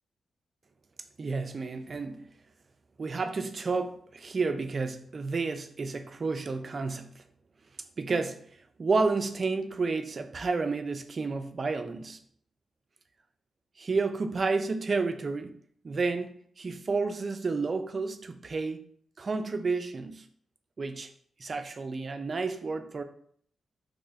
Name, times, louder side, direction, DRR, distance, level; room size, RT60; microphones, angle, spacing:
voice 1, 1.2-2.3 3.0-7.2 8.0-8.4 8.8-12.2 13.8-15.5 15.8-18.8 19.2-20.3 20.8-21.1 21.4-23.0, right 4 dB, 40° right, 0.3 m, -31 dB
3.0 x 2.4 x 3.9 m
cardioid pair, 95°, 0 cm